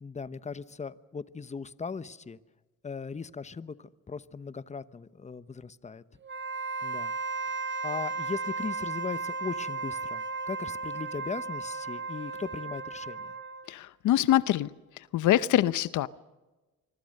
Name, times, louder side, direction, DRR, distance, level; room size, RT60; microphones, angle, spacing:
voice 1, 0.0-2.4 2.8-6.0 6.8-7.1 7.8-13.3, left 5 dB, 25° left, 16 dB, 1.0 m, -38 dB
Wind instrument woodwind instrument, 6.2-13.7, right 3 dB, 40° right, 1.8 m, -35 dB
voice 2, 13.7-14.7 15.1-16.1, left 13 dB, 80° left, 18 dB, 0.8 m, -24 dB
25.5 x 24.0 x 6.6 m, 1.2 s
cardioid pair, 90°, 30 cm